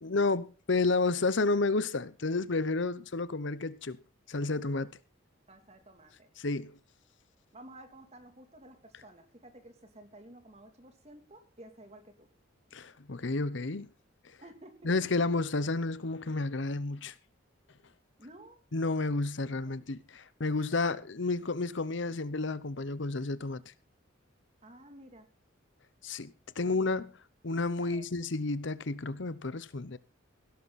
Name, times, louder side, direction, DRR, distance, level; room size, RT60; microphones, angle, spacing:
voice 1, 0.0-4.0 4.3-4.9 6.4-6.8 12.7-13.9 14.8-17.1 18.7-23.6 26.0-26.3 26.6-27.1 27.4-30.0, left 3 dB, 60° left, 0.8 m, -31 dB
voice 2, 5.5-6.3 7.5-12.3 14.4-15.3 18.2-18.6 19.7-19.8 24.6-25.3 26.6-26.8 27.8-28.1, right 1 dB, 30° right, 2.9 m, -53 dB
17.0 x 12.0 x 4.2 m
head